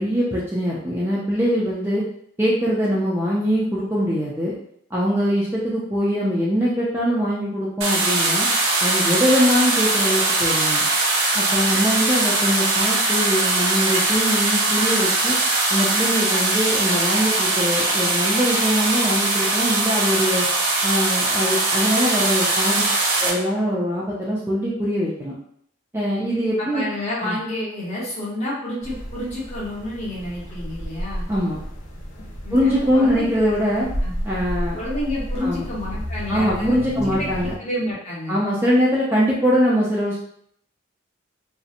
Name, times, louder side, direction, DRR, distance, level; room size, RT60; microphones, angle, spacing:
voice 1, 0.0-2.0 2.4-4.5 4.9-8.5 8.8-10.8 11.3-15.4 15.7-20.5 20.8-22.8 23.2-25.3 25.9-26.9 27.2-27.4 31.3-31.6 32.5-33.9 34.2-34.8 35.4-35.7 36.3-37.5 38.3-40.2, equal, 10° right, -6 dB, 0.3 m, -22 dB
sound 1, 7.8-23.3, right 2 dB, 65° right, 0.5 m, -21 dB
voice 2, 26.6-31.3 32.4-33.3 34.0-34.1 34.7-38.4, left 1 dB, 30° left, -5 dB, 0.7 m, -29 dB
sound 2, 28.8-37.6, equal, 70° left, 0.7 m, -32 dB
2.7 x 2.0 x 2.5 m, 0.67 s
head